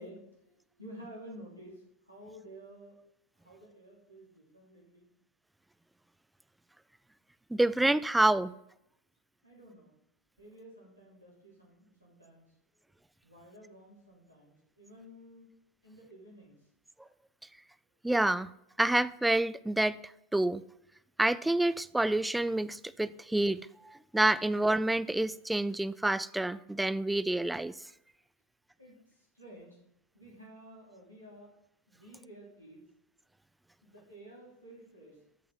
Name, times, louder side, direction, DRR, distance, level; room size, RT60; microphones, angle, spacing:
voice 1, 0.0-3.0 3.4-5.1 9.4-10.0 10.4-12.5 13.2-15.5 15.8-16.6 28.8-29.8 30.1-31.5 31.9-32.8 33.8-35.2, equal, 90° right, 3.0 m, -52 dB
voice 2, 7.5-8.5 18.0-18.5 18.8-20.0 20.3-20.6 21.2-27.7, right 1 dB, 5° right, 0.3 m, -28 dB
13.0 x 5.8 x 3.8 m
figure-of-eight pair, 90°, 0 cm